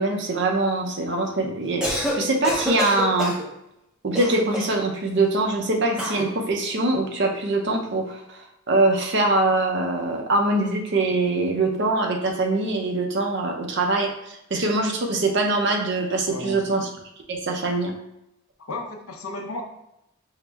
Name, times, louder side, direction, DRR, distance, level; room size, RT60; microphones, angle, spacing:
voice 1, 0.0-3.4 4.0-16.9 17.3-17.9, right 2 dB, 50° right, 2 dB, 0.6 m, -23 dB
Cough, 1.6-2.2 2.4-3.4 4.1-4.8 6.0-6.3, equal, 5° right, 0.6 m, -27 dB
voice 2, 16.3-16.7 18.7-19.6, left 2 dB, 80° left, 2 dB, 0.7 m, -33 dB
4.7 x 2.0 x 3.3 m, 0.81 s
head